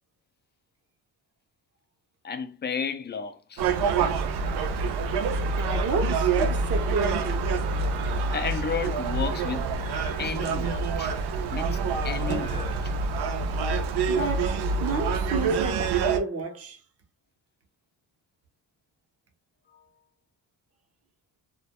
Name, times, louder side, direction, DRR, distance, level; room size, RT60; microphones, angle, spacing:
voice 1, 2.2-3.6 4.0-4.2 5.7-5.8 8.3-11.1 11.5-12.9 19.7-19.8, left 6 dB, 25° left, 0.4 m, -33 dB
Gull seagull, 3.6-16.2, right 4 dB, 75° right, 0.5 m, -26 dB
voice 2, 5.6-7.5 14.1-14.5 14.8-16.8, right 4 dB, 35° right, 0.7 m, -31 dB
2.1 x 2.1 x 2.8 m
cardioid pair, 100°, 40 cm